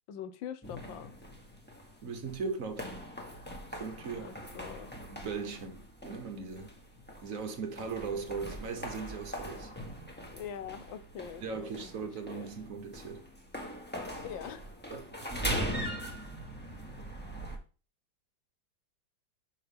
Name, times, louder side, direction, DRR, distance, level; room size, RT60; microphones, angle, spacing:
voice 1, 0.1-1.1 4.2-4.9 9.5-9.7 10.3-12.5 14.2-14.7, left 9 dB, 85° left, 1.6 m, -44 dB
sound 1, 0.6-17.6, equal, 5° left, 1.3 m, -41 dB
voice 2, 2.0-2.9 3.7-4.3 5.1-6.8 7.2-9.7 11.4-13.3 14.9-15.0, right 5 dB, 50° right, 1.4 m, -38 dB
6.4 x 5.6 x 5.2 m
omnidirectional pair, 2.0 m